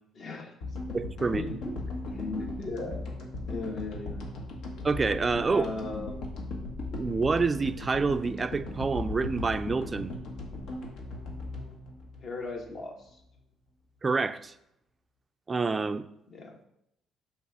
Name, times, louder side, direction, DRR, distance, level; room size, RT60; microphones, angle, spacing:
voice 1, 0.2-0.6 1.2-1.7 2.1-3.0 3.5-4.2 5.5-6.3 12.2-13.1 16.3-16.6, left 3 dB, 50° left, 1 dB, 1.3 m, -37 dB
sound 1, 0.6-12.9, left 2 dB, 75° left, 1.4 m, -38 dB
voice 2, 0.9-1.4 4.8-5.7 6.9-10.1 14.0-14.5 15.5-16.0, right 4 dB, 25° right, 12 dB, 0.4 m, -27 dB
6.2 x 3.5 x 6.0 m, 0.79 s
cardioid pair, 110°, 0 cm